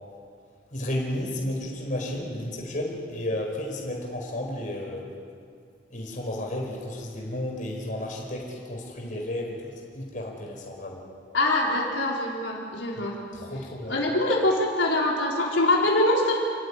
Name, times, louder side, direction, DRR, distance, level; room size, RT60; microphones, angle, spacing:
voice 1, 0.7-5.1 5.9-11.0 13.3-14.0, left 1 dB, 45° left, 0 dB, 4.8 m, -32 dB
voice 2, 11.3-13.2 13.9-16.4, left 1 dB, 85° left, -3 dB, 4.3 m, -24 dB
29.5 x 14.0 x 9.9 m, 2.2 s
head